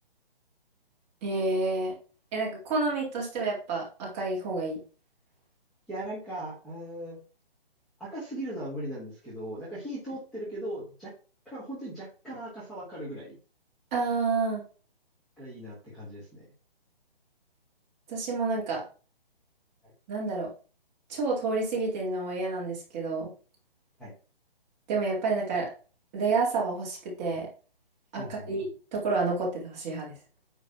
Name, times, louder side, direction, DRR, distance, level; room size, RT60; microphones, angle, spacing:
voice 1, 1.2-2.0 2.3-4.8 13.9-14.6 18.1-18.8 20.1-20.5 21.1-23.3 24.9-25.7 26.1-27.5 28.1-28.7 28.9-30.1, right 3 dB, 15° right, -3 dB, 2.1 m, -29 dB
voice 2, 5.9-7.2 8.0-11.1 11.4-13.4 15.4-16.4 24.0-24.1 28.2-28.5, right 1 dB, ahead, -11 dB, 1.4 m, -38 dB
9.2 x 3.3 x 5.6 m, 0.37 s
hypercardioid pair, 170°, 30 cm